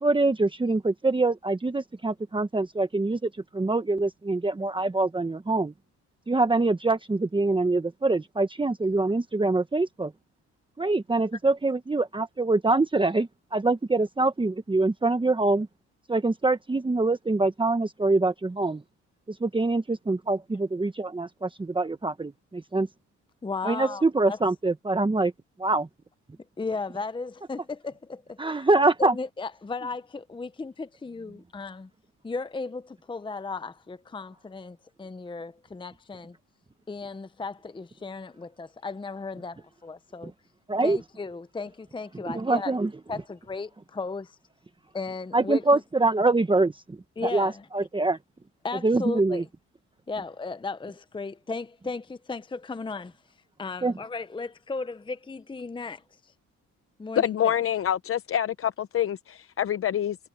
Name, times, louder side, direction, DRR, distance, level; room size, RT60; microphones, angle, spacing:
voice 1, 0.0-5.7 6.3-10.1 10.8-15.7 16.1-18.8 19.4-22.9 23.6-25.3 25.6-25.9 28.4-29.1 40.7-41.0 42.2-42.9 45.3-47.0 47.2-48.2 48.8-49.4 53.8-53.9, right 2 dB, 15° right, 1.3 m, -24 dB
voice 2, 23.4-24.4 26.6-28.7 29.0-31.9 32.2-36.4 36.9-40.3 40.8-42.7 43.1-44.4 44.9-45.8 47.2-47.9 48.6-49.5 50.1-53.1 53.6-56.3 57.0-57.5, left 4 dB, 15° left, 0.7 m, -35 dB
voice 3, 57.2-60.2, left 10 dB, 50° left, 0.7 m, -26 dB
cardioid pair, 90°, 30 cm